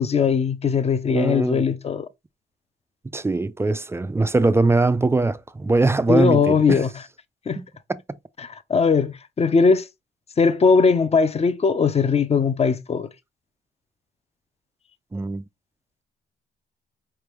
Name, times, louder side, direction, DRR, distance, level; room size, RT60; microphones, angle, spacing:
voice 1, 0.0-2.1 6.1-6.9 7.5-7.6 8.4-9.9 10.4-13.1, left 5 dB, 30° left, 0.6 m, -19 dB
voice 2, 1.1-1.6 3.1-6.8 7.6-8.0 15.1-15.4, right 3 dB, 15° right, 0.3 m, -22 dB
4.5 x 3.3 x 3.0 m
cardioid pair, 90°, 20 cm